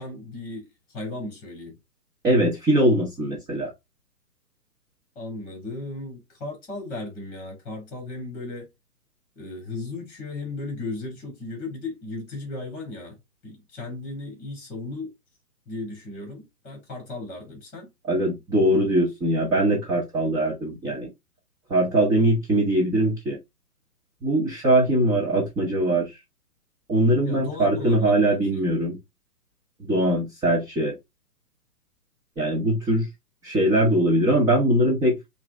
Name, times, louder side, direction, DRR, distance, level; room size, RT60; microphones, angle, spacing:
voice 1, 0.0-1.7 5.1-8.7 9.4-13.2 13.4-15.1 15.7-17.9 27.2-28.6, left 2 dB, 15° left, 2.6 m, -36 dB
voice 2, 2.2-3.7 18.1-21.1 21.7-23.4 24.2-26.1 26.9-29.0 29.8-30.9 32.4-33.1 33.4-35.3, right 1 dB, 10° right, 0.8 m, -21 dB
5.8 x 2.7 x 3.1 m
figure-of-eight pair, 130°, 47 cm